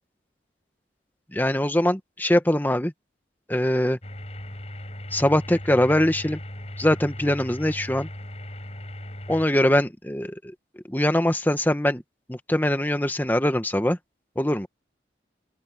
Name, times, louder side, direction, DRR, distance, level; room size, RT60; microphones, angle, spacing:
voice 1, 1.3-2.9 3.5-4.0 5.1-6.4 6.8-8.1 9.3-10.5 10.9-12.0 12.3-14.0 14.3-14.7, left 1 dB, 10° left, 1.2 m, -22 dB
sound 1, 4.0-9.5, left 1 dB, 35° left, 5.4 m, -38 dB
open air
head